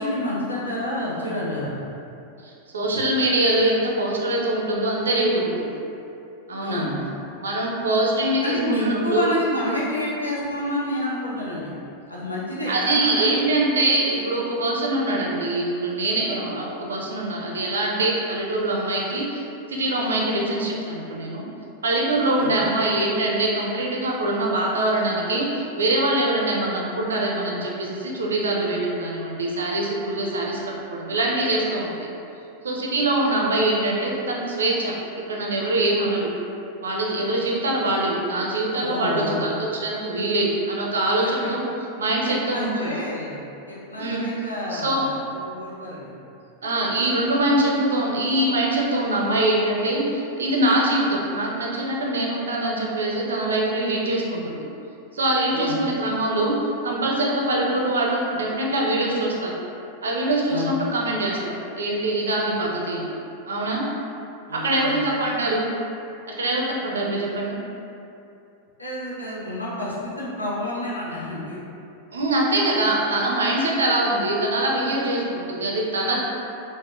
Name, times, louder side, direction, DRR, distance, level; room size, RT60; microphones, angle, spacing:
voice 1, 0.0-1.7 6.6-7.0 8.4-11.7 12.1-13.4 22.2-22.6 38.8-39.4 41.2-41.5 42.3-43.4 43.7-46.1 55.5-55.8 60.5-60.7 64.5-65.0 68.8-71.6, left 1 dB, 85° left, -7 dB, 0.6 m, -29 dB
voice 2, 2.4-5.7 6.5-6.9 7.4-9.2 12.7-21.4 21.8-30.6 30.9-32.1 32.6-34.9 35.3-36.3 36.8-41.6 42.0-42.9 44.0-44.2 44.7-45.1 46.6-54.6 55.1-56.6 56.8-59.5 60.0-63.1 63.5-63.8 64.5-65.7 66.4-67.6 72.1-76.2, right 1 dB, 70° right, -2 dB, 0.4 m, -23 dB
3.4 x 2.0 x 2.3 m, 2.7 s
figure-of-eight pair, 90°, 0 cm